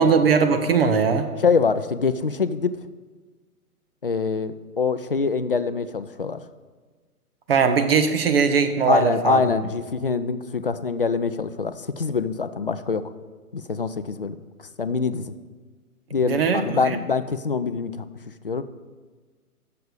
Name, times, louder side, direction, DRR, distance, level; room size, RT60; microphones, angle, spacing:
voice 1, 0.0-1.3 7.5-9.4 16.3-17.0, right 5 dB, 40° right, 8 dB, 0.9 m, -20 dB
voice 2, 1.4-2.8 4.0-6.4 8.8-13.0 13.5-15.3 16.1-18.0 18.4-18.6, left 5 dB, 40° left, 12 dB, 0.4 m, -24 dB
13.0 x 6.8 x 5.0 m, 1.4 s
figure-of-eight pair, 125°, 46 cm